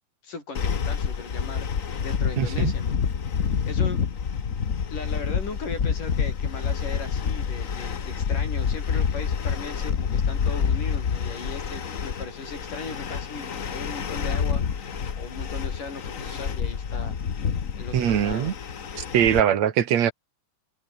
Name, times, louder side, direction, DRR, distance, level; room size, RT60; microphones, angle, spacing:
voice 1, 0.2-1.7 2.0-3.0 3.7-4.1 4.9-14.6 15.2-17.2 17.8-18.5, left 4 dB, 85° left, 8.9 m, -38 dB
sound 1, 0.5-19.4, left 7 dB, 65° left, 0.8 m, -28 dB
voice 2, 2.4-2.7 17.9-18.5 19.0-20.1, right 9 dB, 60° right, 2.8 m, -22 dB
omnidirectional pair, 3.6 m